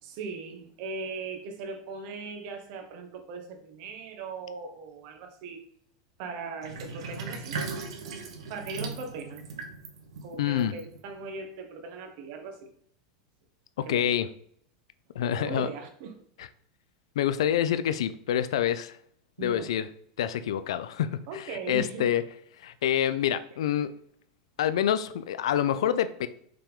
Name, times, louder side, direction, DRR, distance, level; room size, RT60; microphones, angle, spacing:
voice 1, 0.0-5.6 6.2-7.8 8.5-9.5 10.2-12.6 13.8-14.1 15.4-16.1 19.4-19.7 21.3-22.1, right 4 dB, 50° right, 5 dB, 1.3 m, -39 dB
Sink (filling or washing), 6.6-11.4, right 4 dB, 85° right, 1.3 m, -38 dB
voice 2, 10.4-10.7 13.8-14.3 15.1-15.7 16.4-16.5 17.2-19.0 19.4-19.9 20.2-22.2 22.6-23.9 24.6-26.3, left 10 dB, 90° left, 13 dB, 0.5 m, -27 dB
5.7 x 3.6 x 5.0 m, 0.64 s
supercardioid pair, 150°, 3 cm